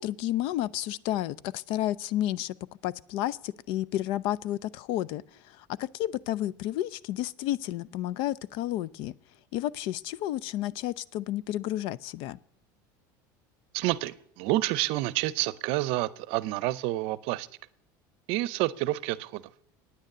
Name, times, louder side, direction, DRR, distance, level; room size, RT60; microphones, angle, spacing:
voice 1, 0.0-2.5 2.8-9.1 9.5-12.4, left 13 dB, 60° left, 21 dB, 0.4 m, -31 dB
voice 2, 13.7-17.5 18.3-19.4, right 17 dB, 65° right, 19 dB, 0.6 m, -29 dB
9.5 x 6.5 x 8.5 m, 0.69 s
supercardioid pair, 120°, 10 cm